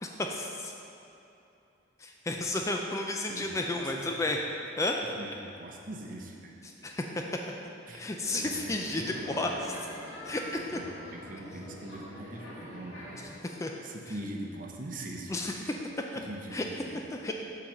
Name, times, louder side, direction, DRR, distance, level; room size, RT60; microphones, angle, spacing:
voice 1, 0.0-0.7 2.0-4.4 4.8-5.0 6.8-7.0 7.9-9.5 10.2-10.8 13.4-13.7 15.3-15.5 16.1-16.2 16.5-16.6 17.2-17.3, left 2 dB, 15° left, 2 dB, 0.3 m, -32 dB
voice 2, 3.3-4.1 5.0-6.5 6.8-7.0 7.9-8.1 8.3-9.6 10.7-13.5 13.8-15.8 16.1-17.1, right 1 dB, 45° right, 0 dB, 0.7 m, -43 dB
sound 1, 8.2-13.2, equal, 75° left, 1.6 m, -45 dB
7.3 x 3.9 x 6.4 m, 2.8 s
head